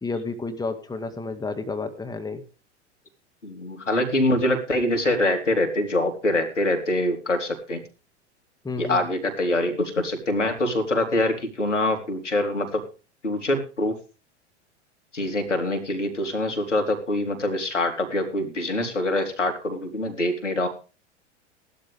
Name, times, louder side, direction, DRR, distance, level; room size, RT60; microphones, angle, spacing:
voice 1, 0.0-2.4 8.6-9.1, left 3 dB, 10° left, 8 dB, 2.0 m, -31 dB
voice 2, 3.4-7.8 8.8-12.9 13.2-13.9 15.1-20.7, left 1 dB, 90° left, 5 dB, 4.1 m, -24 dB
17.5 x 12.0 x 3.6 m, 0.34 s
figure-of-eight pair, 90°, 35 cm